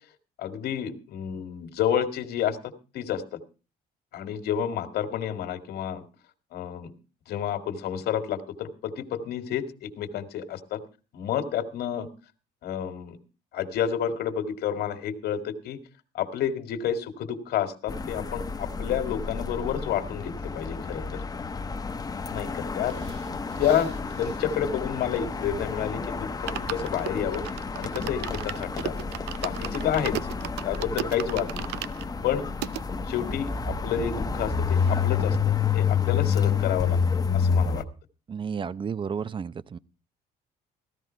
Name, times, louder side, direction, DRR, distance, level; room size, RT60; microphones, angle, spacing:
voice 1, 0.4-3.2 4.1-6.1 6.5-6.9 7.3-10.8 11.1-12.1 12.6-13.2 13.5-15.8 16.1-21.2 22.3-22.9 23.6-23.9 24.2-27.4 27.8-29.0 29.4-30.2 30.6-31.6 32.2-32.5 33.1-37.8, left 9 dB, 70° left, 8 dB, 2.1 m, -30 dB
sound 1, 17.9-37.8, left 6 dB, 20° left, 1.0 m, -29 dB
sound 2, 22.8-25.6 25.9-26.0 26.3-32.8 33.4-33.5 33.7-33.8 34.1-35.1 35.3-35.4, right 14 dB, 80° right, 0.6 m, -38 dB
voice 2, 38.3-39.8, right 6 dB, 30° right, 18 dB, 0.7 m, -32 dB
16.0 x 13.0 x 4.5 m, 0.33 s
cardioid pair, 110°, 17 cm